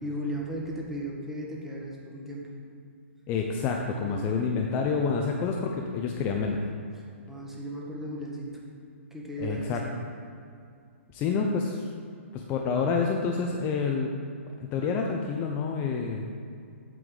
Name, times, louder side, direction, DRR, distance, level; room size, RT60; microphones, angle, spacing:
voice 1, 0.0-2.5 4.0-4.4 6.9-8.6 9.1-10.0, equal, 5° right, -3 dB, 1.4 m, -36 dB
voice 2, 3.3-6.6 9.4-9.8 11.1-11.9 12.3-14.1 14.6-16.3, left 5 dB, 25° left, 1 dB, 0.6 m, -28 dB
7.8 x 7.6 x 3.9 m, 2.4 s
hypercardioid pair, 140°, 7 cm